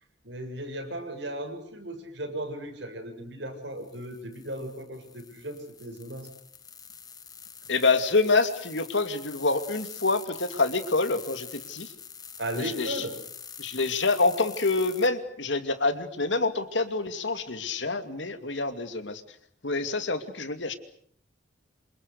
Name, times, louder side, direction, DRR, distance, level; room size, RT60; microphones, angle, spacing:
voice 1, 0.2-6.3 12.4-13.1, right 1 dB, 70° right, 4 dB, 7.5 m, -36 dB
sound 1, 3.8-15.1, left 7 dB, 20° left, 1.8 m, -45 dB
voice 2, 7.7-11.9 12.5-13.0 13.6-19.2 19.6-20.8, left 3 dB, 75° left, 9 dB, 2.7 m, -27 dB
27.5 x 27.0 x 6.6 m, 0.63 s
head